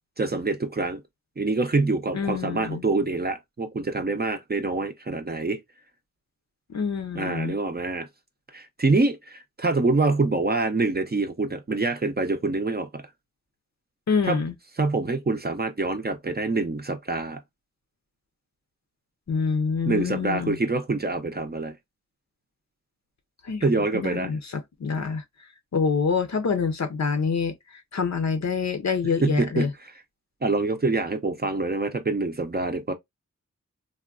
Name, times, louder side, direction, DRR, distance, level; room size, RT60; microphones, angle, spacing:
voice 1, 0.2-1.0 1.4-5.6 7.1-8.1 8.5-13.0 14.3-14.4 14.8-17.4 19.9-21.7 23.6-24.3 29.2-29.7 30.4-32.9, right 3 dB, 30° right, 0.5 m, -25 dB
voice 2, 2.1-2.8 6.7-7.6 14.1-14.5 19.3-20.6 23.4-23.7 23.9-25.2 25.7-27.5 27.9-29.7, left 5 dB, 60° left, 0.6 m, -26 dB
3.5 x 2.2 x 2.3 m
wide cardioid pair, 55°, 31 cm